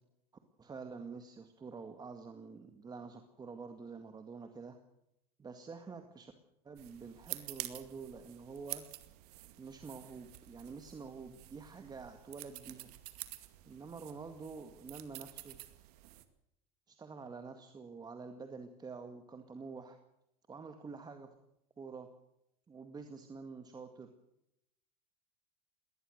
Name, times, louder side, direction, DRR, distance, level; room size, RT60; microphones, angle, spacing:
voice 1, 0.6-4.8 5.4-6.3 6.6-8.8 9.6-12.9 13.7-15.6 16.9-20.0 20.5-21.3 21.8-22.1 22.7-24.1, right 4 dB, 20° right, 6 dB, 2.0 m, -47 dB
sound 1, 6.8-16.2, right 17 dB, 75° right, 2.2 m, -49 dB
21.5 x 19.0 x 6.6 m, 0.81 s
supercardioid pair, 120°, 20 cm